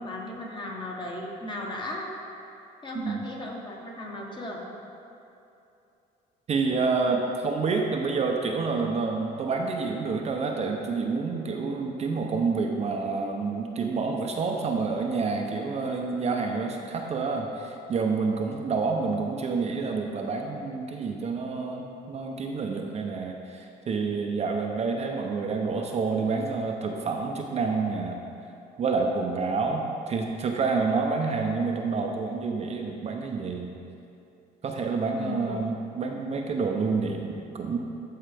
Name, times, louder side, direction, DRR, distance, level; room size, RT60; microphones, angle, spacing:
voice 1, 0.0-2.1 2.8-4.7 35.1-35.7, left 1 dB, 30° left, -1 dB, 1.3 m, -36 dB
voice 2, 2.9-3.3 6.5-28.2 28.8-33.7 34.6-37.8, right 4 dB, 40° right, 2 dB, 0.7 m, -28 dB
13.5 x 4.6 x 3.4 m, 2.8 s
cardioid pair, 110°, 17 cm